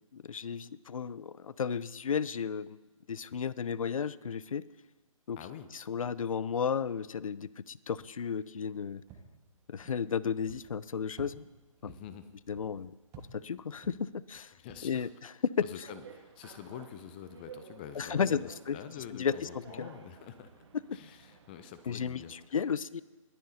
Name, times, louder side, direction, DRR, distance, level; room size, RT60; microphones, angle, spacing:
voice 1, 0.1-2.8 3.1-4.6 5.3-5.4 5.7-9.0 9.7-11.4 11.8-11.9 12.5-12.9 13.3-14.5 14.8-15.6 18.0-18.8 19.1-19.3 19.8-19.9 20.9-21.0 21.9-23.0, left 7 dB, 75° left, 19 dB, 0.5 m, -33 dB
voice 2, 5.4-5.7 11.8-12.3 14.6-15.1 15.6-20.6 20.9-22.6, left 9 dB, 15° left, 11 dB, 0.4 m, -46 dB
sound 1, 8.5-15.3, right 5 dB, 15° right, 1.3 m, -56 dB
sound 2, 15.8-22.5, right 7 dB, 50° right, 1.4 m, -52 dB
21.5 x 10.5 x 2.7 m, 1.2 s
figure-of-eight pair, 145°, 18 cm